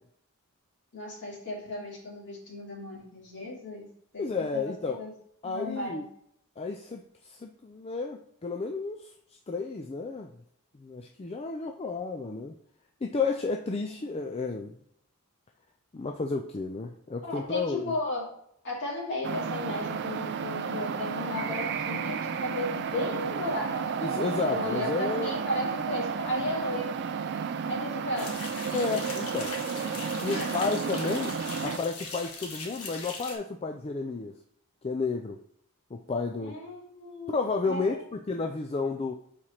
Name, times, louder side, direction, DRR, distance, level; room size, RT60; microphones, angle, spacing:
voice 1, 0.9-3.9 4.1-4.2 4.5-5.1 5.4-6.0 13.9-14.0 17.2-18.3 18.6-23.8 24.5-27.0 27.7-29.0 30.3-30.5 36.4-37.4 37.6-37.8 38.4-38.5, left 1 dB, 55° left, -5 dB, 2.8 m, -35 dB
voice 2, 4.2-5.0 5.4-6.1 6.6-9.1 9.5-10.3 10.8-12.5 13.0-14.8 15.9-17.9 24.0-25.3 28.7-29.6 30.2-34.4 34.8-35.4 35.9-36.6 37.3-39.1, left 4 dB, 25° left, 3 dB, 0.4 m, -32 dB
sound 1, 19.2-31.8, right 6 dB, 50° right, 0.4 m, -32 dB
sound 2, 28.2-33.4, left 3 dB, 85° left, 1.3 m, -40 dB
4.9 x 4.3 x 5.6 m, 0.69 s
head